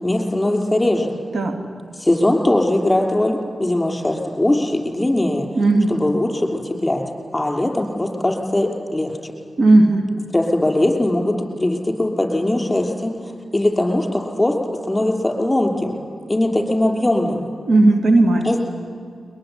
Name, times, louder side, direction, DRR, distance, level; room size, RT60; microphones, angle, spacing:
voice 1, 0.0-1.2 1.9-5.5 5.9-7.1 7.3-9.3 10.3-13.2 13.5-14.6 14.9-16.0 16.3-17.5 18.4-18.6, left 1 dB, 20° left, 2 dB, 5.5 m, -20 dB
voice 2, 5.6-6.0 9.6-10.1 17.7-18.5, right 2 dB, 75° right, 5 dB, 2.4 m, -15 dB
22.0 x 21.5 x 9.8 m, 2.2 s
cardioid pair, 45°, 0 cm